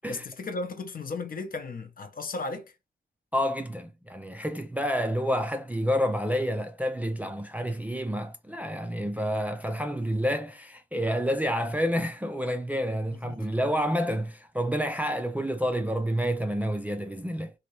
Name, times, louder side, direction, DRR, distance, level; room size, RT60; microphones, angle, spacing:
voice 1, 0.1-2.7 13.1-13.4, left 3 dB, 45° left, 0.7 m, -35 dB
voice 2, 3.3-17.5, equal, 10° right, 0.4 m, -29 dB
2.8 x 2.7 x 3.1 m
wide cardioid pair, 110°, 20 cm